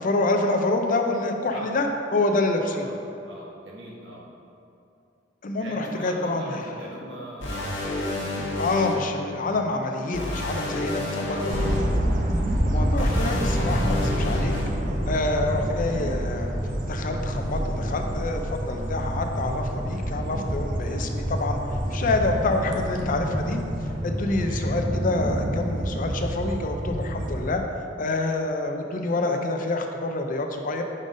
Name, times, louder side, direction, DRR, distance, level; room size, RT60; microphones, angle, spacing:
voice 1, 0.0-2.9 5.4-6.6 8.6-11.7 12.7-14.5 15.1-16.5 16.9-21.6 21.9-23.6 24.0-27.6 28.0-30.8, left 2 dB, 45° left, 4 dB, 0.5 m, -27 dB
voice 2, 2.6-3.0 3.2-4.2 5.6-8.4 10.0-10.1 11.2-11.5 13.0-13.3 24.4-24.6, right 1 dB, 70° right, -4 dB, 1.2 m, -40 dB
sound 1, 7.4-8.9 10.1-11.8 13.0-14.6, left 2 dB, 85° left, 1.1 m, -30 dB
sound 2, 11.5-27.6, equal, 45° right, 0.7 m, -27 dB
5.3 x 3.8 x 5.1 m, 2.7 s
head